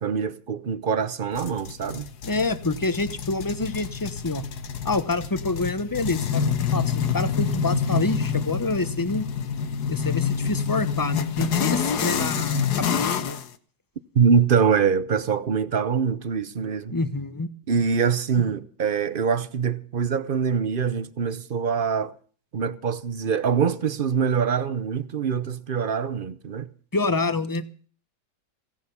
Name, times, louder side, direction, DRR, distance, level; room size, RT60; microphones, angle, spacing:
voice 1, 0.0-2.1 14.1-16.9 17.7-22.1 22.5-26.7, right 6 dB, 45° right, 0.7 m, -24 dB
sound 1, 1.4-13.5, left 6 dB, 65° left, 1.6 m, -27 dB
voice 2, 2.2-4.4 4.8-6.4 6.7-9.3 9.9-13.4 16.9-17.5 26.9-27.6, left 3 dB, 15° left, 0.7 m, -27 dB
17.0 x 10.5 x 7.0 m
omnidirectional pair, 1.9 m